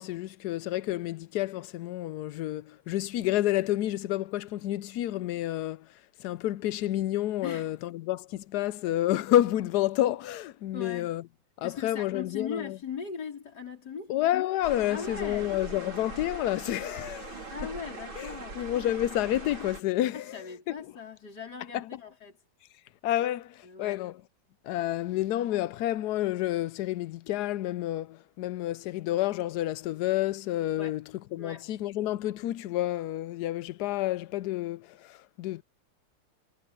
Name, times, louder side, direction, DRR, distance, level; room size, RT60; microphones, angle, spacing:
voice 1, 0.0-5.9 6.2-11.2 11.6-12.8 14.1-17.5 18.2-20.3 23.0-24.1 24.6-31.0 31.3-35.6, left 14 dB, 85° left, 0.8 m, -29 dB
voice 2, 7.4-7.8 10.7-11.1 11.6-14.1 14.9-15.6 17.5-18.7 20.1-22.4 23.6-24.0 30.8-31.0 31.4-31.7, left 6 dB, 50° left, 5.0 m, -39 dB
sound 1, 14.6-19.8, right 3 dB, 75° right, 5.0 m, -41 dB
omnidirectional pair, 2.3 m